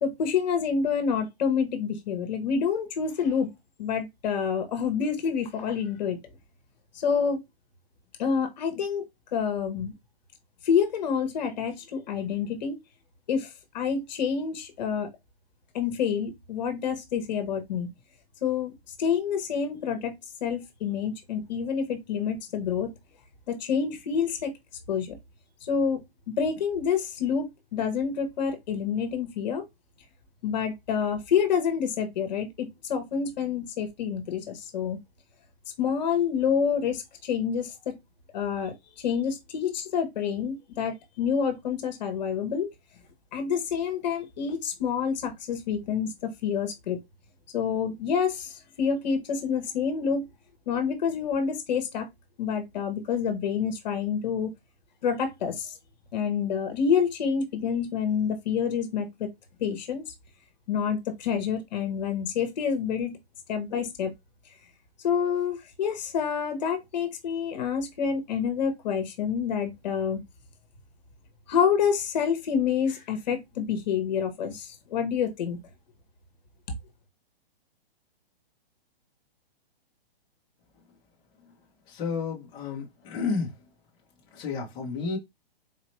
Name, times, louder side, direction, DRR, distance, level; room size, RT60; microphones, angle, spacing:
voice 1, 0.0-3.5 3.8-6.2 6.9-7.4 8.2-9.9 10.6-12.8 13.3-15.1 15.7-17.9 18.4-18.7 19.0-20.1 20.4-22.9 23.5-24.5 24.9-25.2 25.6-26.0 26.3-29.6 30.4-35.0 35.8-38.0 38.3-42.7 43.3-47.0 47.5-50.2 50.7-52.1 52.4-54.5 55.0-55.7 56.1-59.3 59.6-60.1 60.7-63.2 63.5-64.1 65.0-70.2 71.5-75.6, left 7 dB, 45° left, 1.3 m, -28 dB
voice 2, 81.9-83.5 84.3-85.2, left 4 dB, 15° left, 1.0 m, -31 dB
4.2 x 2.8 x 3.2 m
hypercardioid pair, 160°, 31 cm